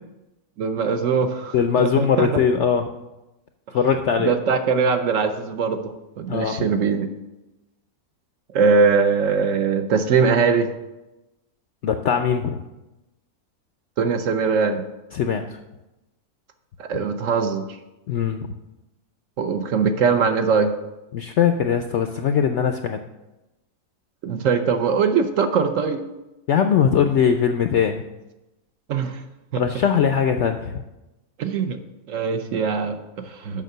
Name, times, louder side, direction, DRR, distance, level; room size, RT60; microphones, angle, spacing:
voice 1, 0.6-2.4 4.2-7.1 8.5-10.7 14.0-14.8 16.8-17.6 19.4-20.7 24.2-26.0 28.9-29.2 29.5-29.6 31.4-31.8 32.1-33.6, right 5 dB, 65° right, 8 dB, 0.9 m, -21 dB
voice 2, 1.5-2.9 3.7-4.3 6.3-6.7 11.8-12.6 15.1-15.4 18.1-18.5 21.1-23.0 26.5-28.0 29.6-30.7, left 7 dB, 70° left, 7 dB, 0.6 m, -20 dB
7.3 x 5.6 x 6.5 m, 1.0 s
omnidirectional pair, 1.7 m